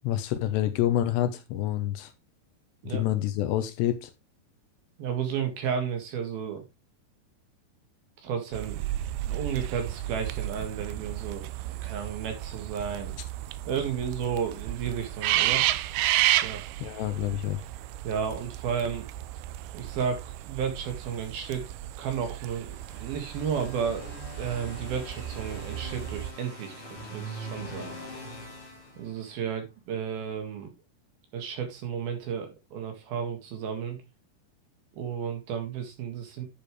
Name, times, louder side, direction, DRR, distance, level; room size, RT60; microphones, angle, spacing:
voice 1, 0.0-2.1 2.9-4.1 16.8-17.6, left 12 dB, 85° left, 9 dB, 3.1 m, -27 dB
voice 2, 5.0-6.6 8.2-8.9 9.3-13.2 13.7-15.7 16.4-16.6 18.0-19.1 19.7-21.6 22.0-27.9 29.0-30.7 31.3-34.0 34.9-36.5, right 7 dB, 65° right, 5 dB, 3.5 m, -33 dB
sound 1, 8.5-26.3, right 15 dB, 80° right, 2.4 m, -32 dB
sound 2, 22.7-29.5, equal, 35° left, 3.6 m, -43 dB
11.0 x 6.9 x 3.2 m, 0.22 s
omnidirectional pair, 4.9 m